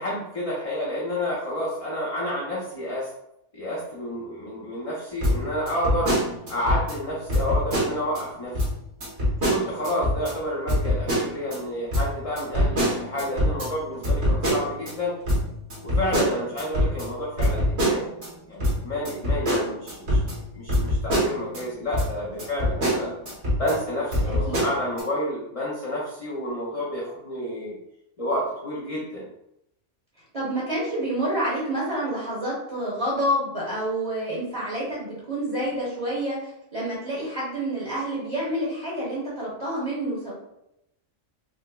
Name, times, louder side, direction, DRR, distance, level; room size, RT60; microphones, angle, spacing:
voice 1, 0.0-3.1 3.5-6.2 6.5-8.6 9.4-15.2 15.8-18.1 18.5-23.1 23.6-27.8 28.2-29.3, left 1 dB, 40° left, -6 dB, 0.6 m, -30 dB
sound 1, 5.2-7.0 7.3-8.2 8.5-8.7 9.0-10.3 10.7-11.6 11.9-14.9 15.3-18.3 18.6-21.6 21.9-22.1 22.4-23.8 24.1-25.0, equal, 65° right, 1.5 m, -24 dB
voice 2, 30.3-40.3, right 1 dB, 30° right, -7 dB, 1.0 m, -28 dB
4.7 x 2.1 x 2.2 m, 0.82 s
omnidirectional pair, 1.3 m